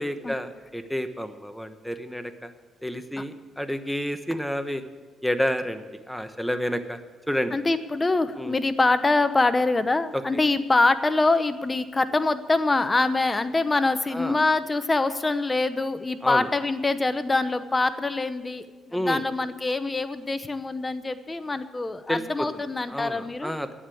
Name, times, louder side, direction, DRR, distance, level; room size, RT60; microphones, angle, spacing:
voice 1, 0.0-2.5 2.8-4.8 5.2-7.0 7.3-7.6 8.4-8.6 10.1-10.2 14.1-14.4 16.2-16.5 18.9-19.2 22.1-22.5 22.9-23.7, equal, ahead, 9 dB, 1.1 m, -29 dB
voice 2, 7.5-23.5, left 3 dB, 20° left, 11 dB, 0.9 m, -24 dB
11.5 x 8.8 x 8.5 m, 1.3 s
cardioid pair, 90°, 0 cm